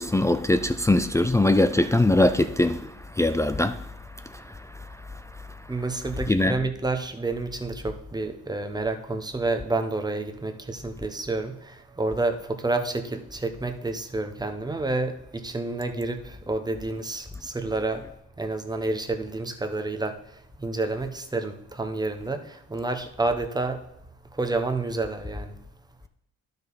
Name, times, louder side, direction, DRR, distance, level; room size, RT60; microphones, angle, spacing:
voice 1, 0.0-5.7 6.3-6.6, left 2 dB, 10° left, 0.4 m, -23 dB
voice 2, 5.7-18.0 18.4-23.8 24.3-25.5, right 2 dB, 15° right, 1.0 m, -29 dB
12.0 x 5.3 x 4.1 m
cardioid pair, 90°, 30 cm